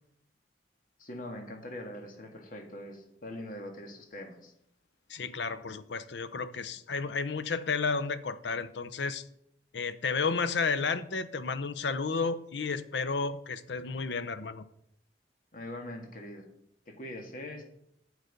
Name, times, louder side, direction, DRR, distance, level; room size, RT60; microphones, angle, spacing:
voice 1, 1.0-4.5 15.5-16.5 16.9-17.6, left 1 dB, 50° left, 3 dB, 1.8 m, -42 dB
voice 2, 5.1-9.2 9.7-14.6, left 4 dB, 75° left, 13 dB, 0.7 m, -32 dB
8.2 x 8.1 x 5.2 m, 0.74 s
head